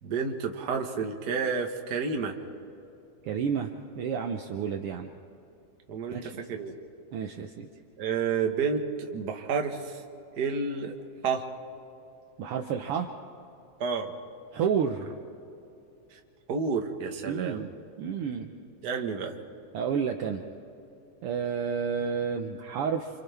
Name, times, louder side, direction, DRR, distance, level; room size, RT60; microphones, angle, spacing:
voice 1, 0.0-2.3 5.9-6.7 8.0-10.0 10.4-10.9 11.2-11.4 13.8-14.1 16.5-17.6 18.8-19.4, right 5 dB, 50° right, 4 dB, 1.3 m, -30 dB
voice 2, 3.2-3.7 4.0-5.1 6.1-6.3 7.1-7.7 12.4-13.1 14.5-15.1 17.3-17.7 18.0-18.5 19.7-20.4 21.2-23.1, right 7 dB, 75° right, 4 dB, 1.3 m, -30 dB
29.5 x 27.0 x 3.5 m, 2.8 s
omnidirectional pair, 3.6 m